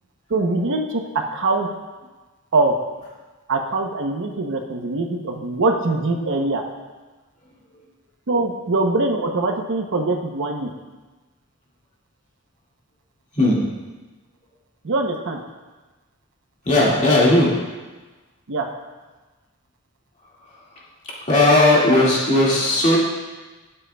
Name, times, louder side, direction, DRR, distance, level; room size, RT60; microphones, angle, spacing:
voice 1, 0.3-1.7 2.5-2.7 3.5-6.6 8.3-10.7 14.8-15.4 18.5-18.7, right 2 dB, 60° right, 3 dB, 0.7 m, -22 dB
voice 2, 16.6-17.5 20.4-20.8 21.2-23.0, left 1 dB, 35° left, -5 dB, 2.0 m, -17 dB
12.5 x 7.6 x 2.3 m, 1.2 s
head